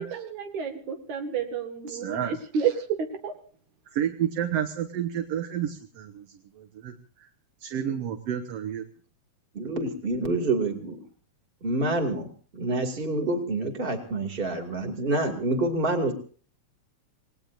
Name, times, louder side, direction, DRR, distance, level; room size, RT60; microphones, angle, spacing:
voice 1, 0.0-2.7 3.0-3.3, right 7 dB, 80° right, 5 dB, 3.3 m, -30 dB
voice 2, 1.9-2.4 3.9-7.3 7.6-8.8, right 9 dB, 60° right, 5 dB, 2.2 m, -31 dB
voice 3, 9.5-11.0 11.6-12.3 12.5-16.1, right 2 dB, 20° right, 4 dB, 2.4 m, -27 dB
28.0 x 19.5 x 2.6 m, 0.43 s
omnidirectional pair, 3.3 m